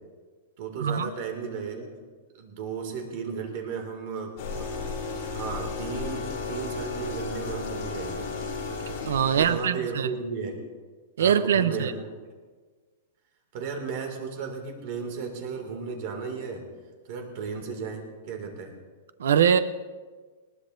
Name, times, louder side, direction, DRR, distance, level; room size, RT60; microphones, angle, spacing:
voice 1, 0.6-2.0 2.3-5.0 5.3-8.2 9.3-10.6 11.2-12.1 13.5-16.6 17.1-18.7, right 5 dB, 40° right, 4 dB, 2.3 m, -35 dB
sound 1, 4.4-9.5, left 4 dB, 35° left, 4.5 m, -33 dB
voice 2, 9.1-10.1 11.2-11.9 19.2-19.6, right 8 dB, 90° right, 13 dB, 0.6 m, -22 dB
20.0 x 19.0 x 2.6 m, 1.4 s
supercardioid pair, 175°, 0 cm